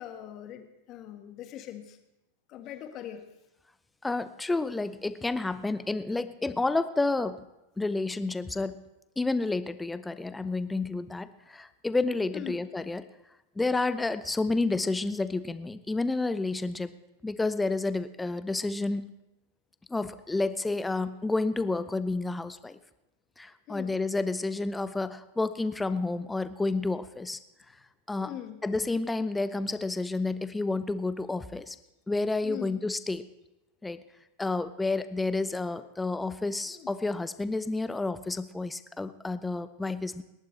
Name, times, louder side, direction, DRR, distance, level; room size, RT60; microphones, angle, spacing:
voice 1, 0.0-2.0 2.5-3.2 12.3-12.7 23.7-24.0 28.2-28.6 32.4-32.8 36.6-36.9, left 11 dB, 35° left, 7 dB, 1.6 m, -41 dB
voice 2, 4.0-7.4 7.8-8.8 9.2-13.0 13.6-16.9 17.2-19.1 19.9-22.8 23.4-27.4 28.1-28.3 28.6-31.8 32.1-33.2 33.8-34.0 34.4-40.2, left 3 dB, 10° left, 13 dB, 0.7 m, -30 dB
28.0 x 11.0 x 3.3 m, 0.95 s
figure-of-eight pair, 90°, 0 cm